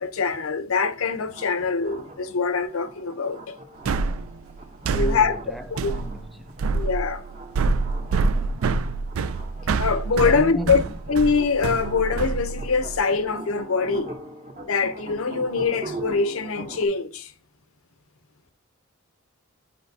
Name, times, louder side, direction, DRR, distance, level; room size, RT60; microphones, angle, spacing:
voice 1, 0.0-3.5 5.0-5.4 5.8-5.9 6.7-7.2 9.8-10.8 11.1-14.1 14.6-17.3, left 5 dB, 80° left, 0.7 m, -23 dB
sound 1, 0.8-16.9, right 2 dB, 35° right, 0.8 m, -41 dB
sound 2, 3.9-13.0, right 4 dB, 90° right, 0.4 m, -26 dB
voice 2, 4.8-6.7 8.1-8.8 10.2-10.9, left 1 dB, ahead, 0.5 m, -36 dB
8.4 x 5.1 x 2.7 m
head